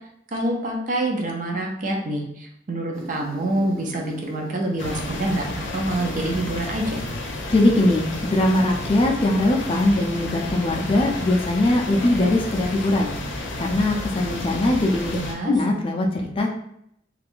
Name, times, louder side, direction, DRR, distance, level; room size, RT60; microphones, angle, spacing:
voice 1, 0.3-7.0 15.1-15.5, right 1 dB, 45° right, 1 dB, 0.5 m, -26 dB
Insect, 2.9-7.9, right 1 dB, 90° right, 1.0 m, -41 dB
sound 1, 4.8-15.3, left 2 dB, 75° left, 0.6 m, -32 dB
voice 2, 7.5-13.1 13.6-15.2 15.5-16.5, left 1 dB, 30° left, 0 dB, 0.4 m, -21 dB
2.5 x 2.3 x 3.5 m, 0.74 s
head